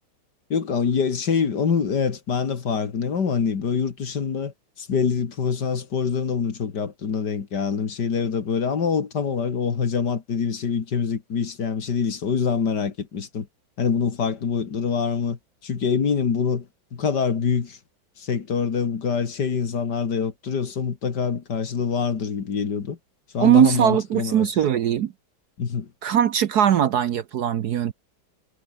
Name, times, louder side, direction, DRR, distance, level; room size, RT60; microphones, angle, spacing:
voice 1, 0.5-13.5 13.8-17.8 18.2-23.0 23.3-24.5 25.6-25.9, left 6 dB, 60° left, 2.5 m, -25 dB
voice 2, 23.4-25.1 26.0-27.9, right 10 dB, 60° right, 1.2 m, -20 dB
omnidirectional pair, 2.2 m